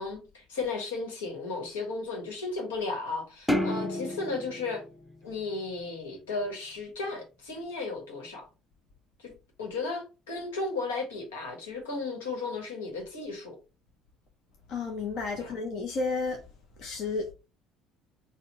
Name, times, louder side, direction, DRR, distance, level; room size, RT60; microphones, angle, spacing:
voice 1, 0.0-4.8 5.2-8.5 9.2-9.3 9.6-13.6 15.4-15.5, left 3 dB, 80° left, 1.3 m, -34 dB
sound 1, 3.5-6.0, left 1 dB, 5° left, 0.7 m, -31 dB
voice 2, 14.7-16.4 16.8-17.3, left 3 dB, 55° left, 0.8 m, -32 dB
4.3 x 2.3 x 3.8 m
hypercardioid pair, 60°, 0 cm